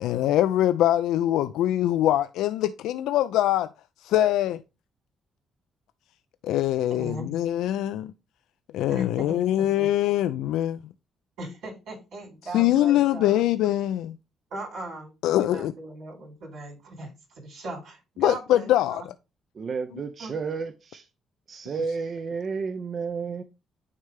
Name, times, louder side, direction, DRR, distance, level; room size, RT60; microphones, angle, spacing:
voice 1, 0.0-3.7 4.0-4.6 6.4-8.1 8.7-10.8 12.5-14.2 15.2-15.7 18.2-19.0, left 13 dB, 90° left, 0.3 m, -23 dB
voice 2, 6.9-7.3 8.9-9.9 11.4-13.4 14.5-17.1 17.4-19.0 20.2-20.3, right 1 dB, 85° right, 4.3 m, -38 dB
voice 3, 19.5-21.1 21.5-23.4, right 5 dB, 50° right, 0.6 m, -31 dB
9.4 x 3.2 x 3.4 m
cardioid pair, 90°, 0 cm